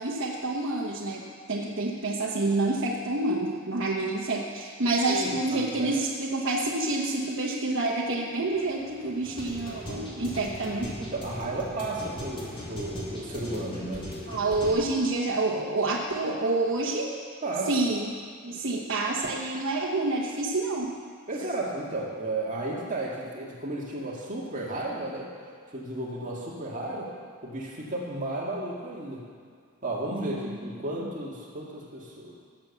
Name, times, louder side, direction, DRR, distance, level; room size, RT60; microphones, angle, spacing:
voice 1, 0.0-10.9 14.3-17.1 17.7-18.1 18.4-20.9 21.4-21.5 30.1-30.7 31.0-31.1, right 2 dB, 60° right, -3 dB, 1.2 m, -28 dB
voice 2, 5.1-5.9 11.0-14.1 17.4-17.7 19.1-19.2 21.3-25.3 25.7-27.1 27.4-29.2 29.8-32.3, right 2 dB, 40° right, -4 dB, 2.1 m, -33 dB
sound 1, 8.5-14.7, equal, 25° left, 2.7 m, -39 dB
18.5 x 7.1 x 7.2 m, 2.1 s
head